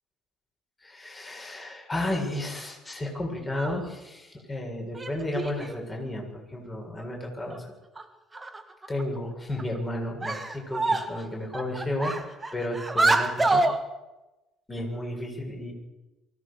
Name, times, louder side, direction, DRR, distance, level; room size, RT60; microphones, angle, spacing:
voice 1, 0.8-7.7 8.9-13.6 14.7-15.7, left 1 dB, 20° left, 0 dB, 7.6 m, -33 dB
sound 1, 3.4-3.9 4.9-5.8 7.0-7.1 7.5-7.6 8.0-8.1 8.3-9.0 9.6-9.8 10.2-11.2 11.5-13.8, right 2 dB, 15° right, 2.1 m, -27 dB
23.5 x 17.0 x 6.8 m, 1.0 s
figure-of-eight pair, 55°, 0 cm